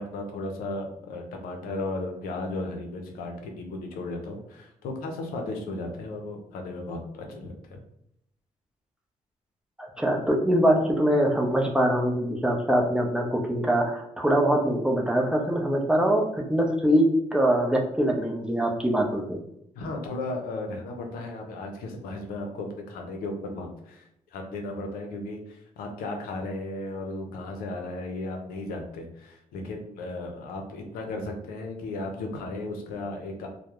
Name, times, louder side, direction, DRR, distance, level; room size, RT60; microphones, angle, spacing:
voice 1, 0.0-7.8 19.7-24.0 24.3-33.5, left 2 dB, 90° left, 3 dB, 0.5 m, -35 dB
voice 2, 9.8-19.4, right 1 dB, 5° right, 0 dB, 0.6 m, -23 dB
2.2 x 2.0 x 2.9 m, 0.75 s
supercardioid pair, 55°, 14 cm